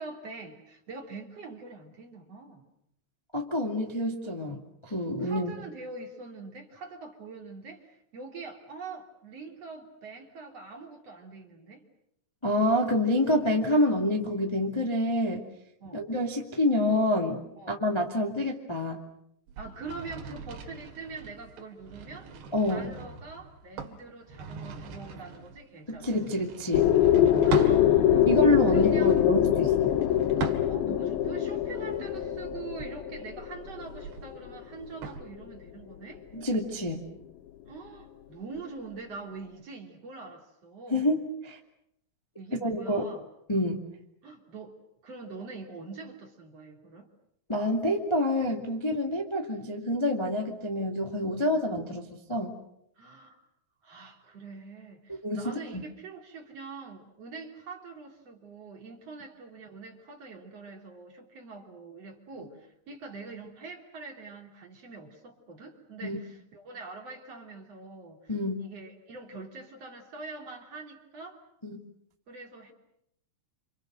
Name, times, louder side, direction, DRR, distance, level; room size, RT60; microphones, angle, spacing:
voice 1, 0.0-2.7 5.2-11.8 15.8-16.1 17.6-17.8 19.6-22.3 22.7-26.1 27.4-28.3 28.7-29.1 30.6-36.2 37.7-41.0 42.4-43.3 44.2-47.1 53.0-53.4 53.8-71.4 72.3-72.7, right 4 dB, 35° right, 1 dB, 3.7 m, -44 dB
voice 2, 3.3-5.5 12.4-15.4 15.9-17.4 17.7-19.0 22.5-22.9 25.9-26.9 28.2-29.9 36.3-37.0 40.9-41.6 42.6-43.1 43.5-43.8 47.5-52.5 55.1-55.8 66.0-66.2 68.3-68.6 71.6-71.8, left 1 dB, 20° left, 0 dB, 0.8 m, -27 dB
sound 1, 19.5-27.8 28.6-31.1 31.6-35.2, right 5 dB, 70° right, 4.4 m, -40 dB
sound 2, 26.7-34.6, left 11 dB, 70° left, 2.5 m, -24 dB
28.5 x 28.0 x 6.5 m, 0.76 s
omnidirectional pair, 5.3 m